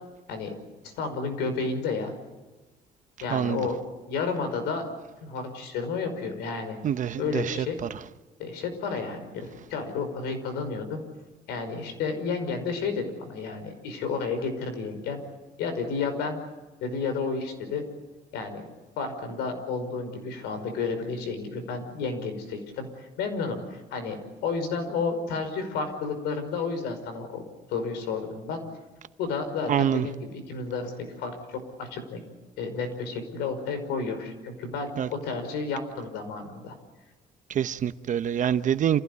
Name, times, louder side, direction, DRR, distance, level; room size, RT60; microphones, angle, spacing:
voice 1, 1.0-2.1 3.2-3.8 4.1-4.8 5.2-6.8 7.2-7.8 8.4-11.0 11.5-15.2 15.6-16.4 16.8-17.8 18.3-18.6 19.0-24.2 24.4-27.4 27.7-28.6 29.2-30.9 31.2-32.2 32.6-36.7, left 4 dB, 90° left, 5.4 m, -31 dB
voice 2, 3.3-3.6 6.8-7.7 29.7-30.1 35.0-35.1 37.5-39.0, right 9 dB, 50° right, 1.0 m, -25 dB
28.0 x 16.5 x 9.9 m
cardioid pair, 110°, 17 cm